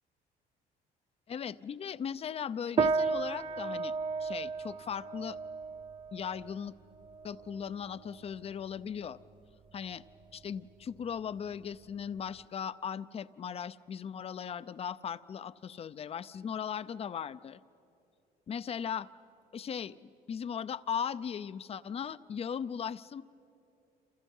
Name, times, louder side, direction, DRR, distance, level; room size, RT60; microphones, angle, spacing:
voice 1, 1.3-3.9 4.2-5.4 6.1-6.7 7.2-9.2 9.7-10.0 10.3-17.6 18.5-19.1 19.5-23.2, left 7 dB, 35° left, 15 dB, 0.6 m, -38 dB
sound 1, 2.8-12.4, right 4 dB, 30° right, 0.5 m, -36 dB
28.0 x 27.5 x 5.5 m, 2.7 s
cardioid pair, 110°, 17 cm